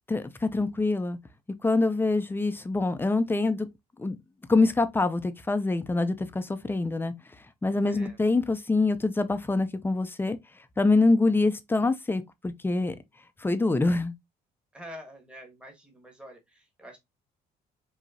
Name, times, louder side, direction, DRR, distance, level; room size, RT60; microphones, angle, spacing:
voice 1, 0.1-1.2 1.6-3.7 4.0-4.2 4.5-7.1 7.6-10.4 10.8-13.0 13.4-14.1, left 3 dB, 10° left, 0.6 m, -25 dB
voice 2, 7.9-8.2 14.7-17.0, equal, 5° right, 1.3 m, -47 dB
5.0 x 2.9 x 2.7 m
cardioid pair, 110°, 17 cm